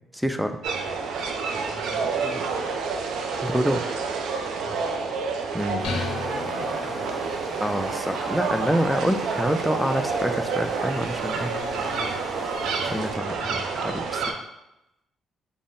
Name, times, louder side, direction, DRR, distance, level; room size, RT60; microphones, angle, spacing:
voice 1, 0.1-0.6 3.4-3.8 5.5-6.0 7.6-11.5 12.8-14.2, equal, ahead, 7 dB, 0.3 m, -27 dB
sound 1, 0.6-14.3, right 4 dB, 85° right, 0.4 m, -29 dB
voice 2, 1.5-2.5 4.6-4.9 6.3-7.9 11.2-12.4, equal, 15° right, -10 dB, 1.1 m, -43 dB
sound 2, 5.8-7.5, left 4 dB, 85° left, 0.5 m, -34 dB
sound 3, 5.8-13.1, right 1 dB, 40° right, 1.1 m, -40 dB
3.6 x 2.1 x 3.7 m, 0.89 s
cardioid pair, 90°, 0 cm